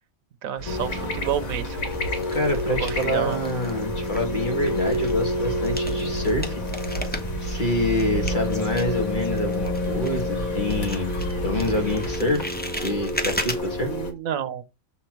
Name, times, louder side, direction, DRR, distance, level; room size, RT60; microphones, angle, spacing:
voice 1, 0.4-1.8 2.8-3.4 13.8-14.6, right 9 dB, 80° right, 1.2 m, -30 dB
sound 1, 0.6-12.2, right 2 dB, 60° left, 2.9 m, -33 dB
sound 2, 0.7-14.1, left 2 dB, 85° left, 2.2 m, -29 dB
sound 3, 1.9-3.8 4.0-10.4 10.7-13.6, left 1 dB, 10° left, 0.9 m, -36 dB
voice 2, 2.3-6.6 7.4-11.1 11.4-12.5 12.8-13.9, left 1 dB, 35° left, 2.2 m, -26 dB
7.1 x 4.3 x 4.5 m
omnidirectional pair, 1.4 m